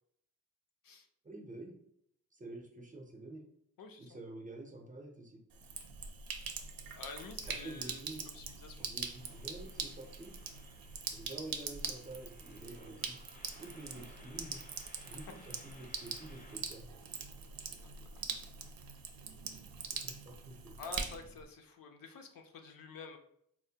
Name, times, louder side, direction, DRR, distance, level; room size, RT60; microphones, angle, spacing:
voice 1, 1.2-1.7 2.4-3.4 4.0-5.4 7.6-8.2 8.8-10.3 11.1-13.2 13.6-14.6 15.1-16.9 19.9-20.8, right 2 dB, 25° right, 1 dB, 0.5 m, -48 dB
voice 2, 3.8-4.2 6.9-8.0 8.3-8.8 18.2-18.3 20.8-23.2, left 5 dB, 75° left, 4 dB, 0.5 m, -49 dB
Sink (filling or washing), 5.5-21.4, right 6 dB, 80° right, 0.5 m, -43 dB
sound 1, 9.1-16.6, left 1 dB, 25° left, 0.5 m, -60 dB
4.2 x 2.1 x 2.7 m, 0.70 s
wide cardioid pair, 170°, 34 cm